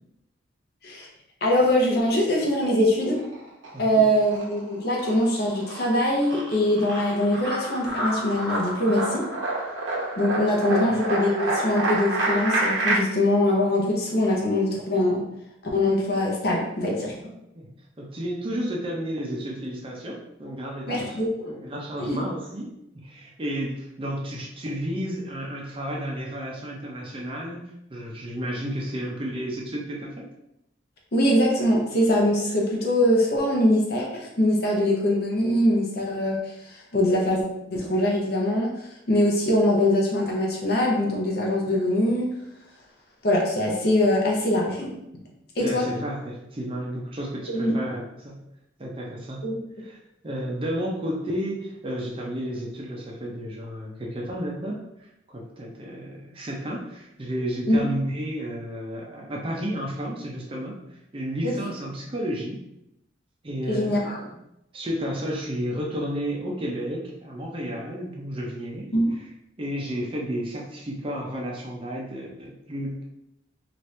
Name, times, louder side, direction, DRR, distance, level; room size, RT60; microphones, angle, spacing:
voice 1, 1.4-3.2 3.8-9.2 10.2-15.2 15.7-17.1 20.9-21.3 22.0-22.2 31.1-37.4 37.7-42.3 43.2-44.9 45.6-45.8 47.5-47.7 49.4-49.6 57.7-57.8 61.4-61.5 63.7-64.2 68.9-69.1, left 1 dB, 55° left, -2 dB, 0.8 m, -23 dB
sound 1, 3.0-3.8 4.2-13.0, right 2 dB, 85° right, 0.8 m, -28 dB
voice 2, 3.7-4.1 10.7-11.0 17.2-17.7 18.0-21.2 21.4-22.7 23.0-27.6 27.9-30.3 45.6-48.4 48.8-49.5 49.8-50.0 50.2-54.7 55.3-62.6 63.4-64.4 64.7-68.9 69.2-69.3 69.6-73.0, equal, 30° right, -2 dB, 0.5 m, -32 dB
2.9 x 2.5 x 3.1 m, 0.84 s
head